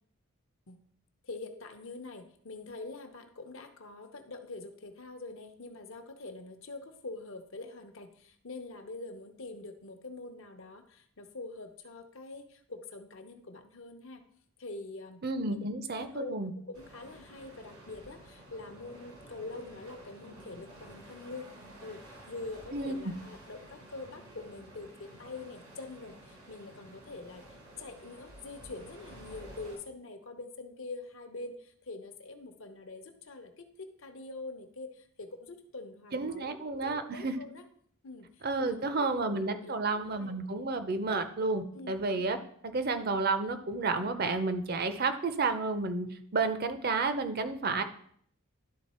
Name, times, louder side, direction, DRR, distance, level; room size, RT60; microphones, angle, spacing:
voice 1, 1.2-14.2 14.6-15.2 15.5-15.6 16.0-16.3 16.7-37.7 38.0-40.4 41.7-42.0, left 3 dB, 65° left, 7 dB, 0.8 m, -45 dB
voice 2, 15.2-16.5 22.7-22.9 36.1-37.4 38.4-42.4 42.6-46.1 46.3-47.8, right 3 dB, 45° right, 9 dB, 0.6 m, -31 dB
sound 1, 16.7-29.8, right 1 dB, 90° right, 3.1 m, -52 dB
11.5 x 3.8 x 4.3 m, 0.62 s
head